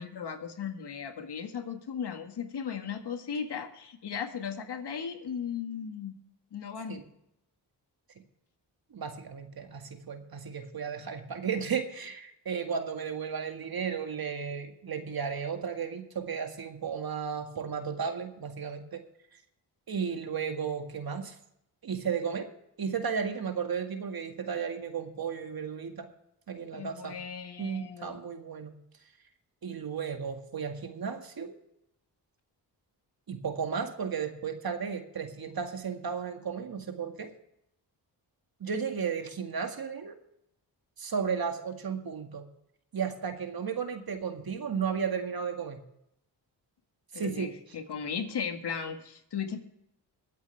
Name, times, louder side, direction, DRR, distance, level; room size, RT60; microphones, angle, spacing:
voice 1, 0.0-6.1 6.5-7.0 26.7-28.2 47.1-49.6, left 7 dB, 70° left, 6 dB, 1.9 m, -36 dB
voice 2, 8.9-19.0 19.9-21.4 21.8-22.5 22.8-26.1 26.5-27.1 27.6-28.7 29.6-31.5 33.3-37.3 38.6-40.2 41.0-42.4 42.9-45.8 47.1-47.5, right 6 dB, 55° right, 5 dB, 2.0 m, -34 dB
23.0 x 8.3 x 3.4 m, 0.79 s
cardioid pair, 70°, 42 cm